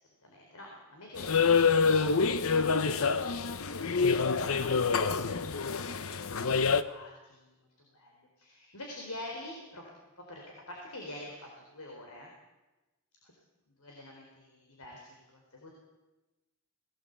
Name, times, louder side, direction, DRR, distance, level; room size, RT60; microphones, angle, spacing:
voice 1, 0.2-9.8 10.2-12.3 13.2-13.3 13.8-15.8, left 1 dB, 90° left, -1 dB, 4.1 m, -47 dB
sound 1, 1.2-6.8, left 5 dB, 70° left, 0.8 m, -27 dB
20.0 x 17.5 x 8.2 m, 1.1 s
head